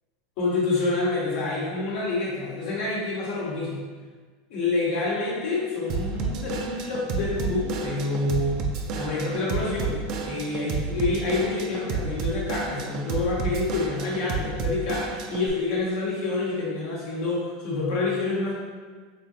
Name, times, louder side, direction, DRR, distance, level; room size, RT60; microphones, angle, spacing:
voice 1, 0.4-3.8 4.5-8.6 8.9-18.5, left 3 dB, 60° left, -5 dB, 1.3 m, -27 dB
Drum kit / Drum, 5.9-15.5, right 4 dB, 50° right, 0.4 m, -31 dB
4.1 x 2.7 x 2.8 m, 1.5 s
hypercardioid pair, 90°, 0 cm